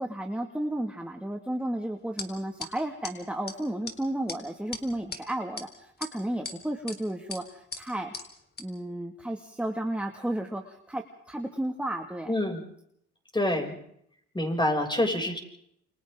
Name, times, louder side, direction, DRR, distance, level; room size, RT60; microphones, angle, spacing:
voice 1, 0.0-8.1 8.6-12.3, right 1 dB, 5° right, 3 dB, 2.1 m, -33 dB
sound 1, 2.2-2.3 2.6-2.7 3.0-3.1 3.5-3.6 3.9-4.0 4.3-4.4 4.7-5.2 5.6-5.7 6.0-6.6 6.9-7.0 7.3-7.4 7.7-7.8 8.1-8.3 8.6-8.7, left 3 dB, 35° left, 4.0 m, -37 dB
voice 2, 12.3-12.6 13.3-13.8 14.3-15.4, left 1 dB, 15° left, 2 dB, 6.9 m, -26 dB
29.5 x 26.5 x 3.8 m, 0.69 s
cardioid pair, 90°, 30 cm